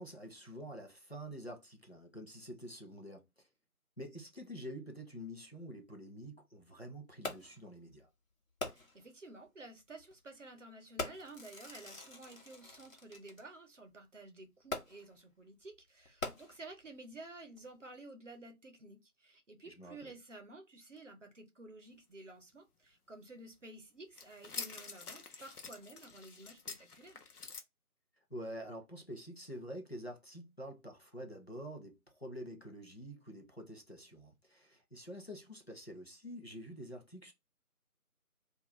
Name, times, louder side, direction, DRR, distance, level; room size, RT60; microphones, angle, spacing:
voice 1, 0.0-3.5 4.0-8.1 19.6-20.1 28.3-37.3, equal, 45° left, 0.5 m, -47 dB
Fireworks, 7.2-7.7 8.6-9.1 10.0-10.1 11.0-13.4 14.7-15.2 16.0-16.9 17.6-17.7, left 3 dB, 60° left, 0.9 m, -43 dB
voice 2, 8.6-27.2, right 2 dB, 55° right, 0.6 m, -52 dB
sound 1, 24.2-27.6, left 4 dB, 90° left, 0.7 m, -47 dB
2.3 x 2.1 x 2.9 m
figure-of-eight pair, 170°, 44 cm